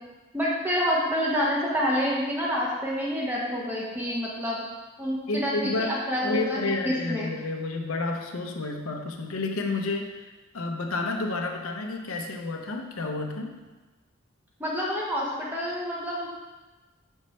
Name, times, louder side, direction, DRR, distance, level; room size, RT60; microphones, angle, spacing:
voice 1, 0.3-4.6 5.0-6.6 6.8-7.3 14.6-16.3, equal, 10° right, -5 dB, 1.0 m, -28 dB
voice 2, 5.3-13.6, left 3 dB, 90° left, 3 dB, 0.7 m, -30 dB
6.4 x 5.3 x 3.2 m, 1.2 s
head